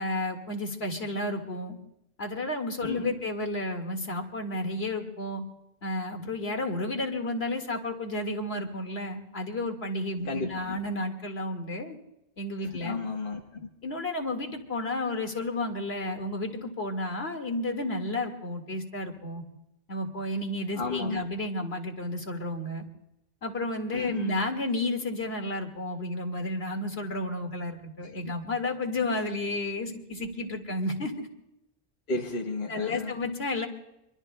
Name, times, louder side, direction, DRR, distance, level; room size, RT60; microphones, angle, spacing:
voice 1, 0.0-1.8 2.2-5.4 5.8-12.0 12.4-13.0 13.8-19.4 19.9-22.8 23.4-31.3 32.7-33.7, left 2 dB, 70° left, 4 dB, 2.2 m, -32 dB
voice 2, 2.8-3.2 10.2-10.8 12.7-13.7 20.7-21.2 23.9-24.3 32.1-33.2, left 3 dB, 50° left, 0 dB, 1.4 m, -33 dB
26.0 x 24.0 x 2.2 m, 0.87 s
omnidirectional pair, 1.1 m